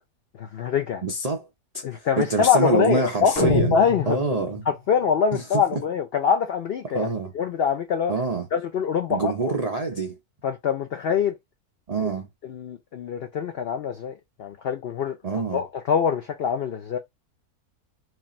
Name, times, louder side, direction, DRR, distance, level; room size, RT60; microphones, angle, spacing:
voice 1, 0.4-1.0 1.8-7.1 7.3-8.1 8.5-9.5 10.4-11.3 12.0-12.1 12.4-14.1 14.4-15.2 15.5-17.0, left 7 dB, 80° left, 0.5 m, -24 dB
voice 2, 1.0-1.5 1.7-3.7 4.1-4.6 5.3-5.8 6.9-7.3 8.1-8.5 9.1-10.2 11.9-12.3 15.2-15.6, right 3 dB, 80° right, 0.3 m, -26 dB
sound 1, 3.4-4.8, left 3 dB, 55° left, 1.2 m, -26 dB
3.2 x 2.4 x 4.1 m
omnidirectional pair, 1.6 m